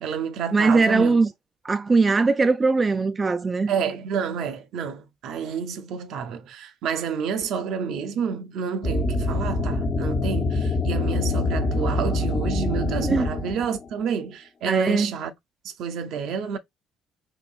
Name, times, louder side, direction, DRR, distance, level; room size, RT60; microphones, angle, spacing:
voice 1, 0.0-1.2 3.7-15.3 15.8-16.6, right 6 dB, 70° right, 0.6 m, -29 dB
voice 2, 0.5-1.3 1.6-3.7 13.0-13.3 14.6-15.1, right 4 dB, 25° right, 0.3 m, -20 dB
sound 1, 8.8-13.9, left 2 dB, 45° left, 1.1 m, -25 dB
3.9 x 3.0 x 2.4 m
supercardioid pair, 95°, 0 cm